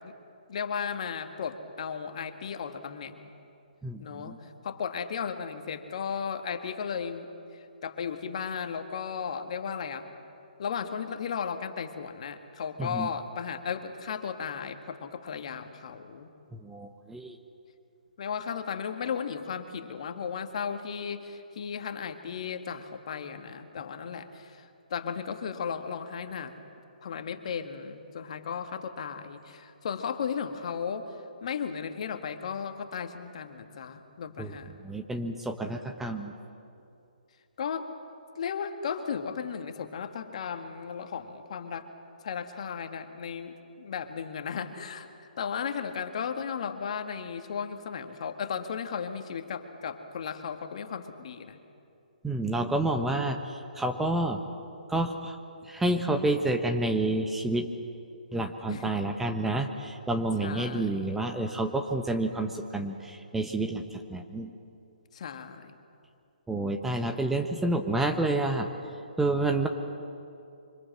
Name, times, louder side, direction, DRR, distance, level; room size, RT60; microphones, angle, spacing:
voice 1, 0.5-3.2 4.0-4.3 4.6-7.3 7.5-10.1 10.6-16.3 18.2-26.5 27.0-31.1 31.4-34.7 37.6-37.9 38.4-41.9 42.2-45.1 45.4-51.6 58.7-58.9 60.4-61.3 65.1-65.8, left 6 dB, 45° left, 7 dB, 1.9 m, -35 dB
voice 2, 3.8-4.4 12.8-13.1 16.6-17.4 34.4-34.6 34.8-36.3 52.2-53.4 53.8-54.4 54.9-55.3 55.7-57.7 58.3-63.8 64.1-64.5 66.5-68.7 69.2-69.7, right 2 dB, 5° right, 4 dB, 1.1 m, -29 dB
25.5 x 25.0 x 7.7 m, 2.6 s
figure-of-eight pair, 130°, 5 cm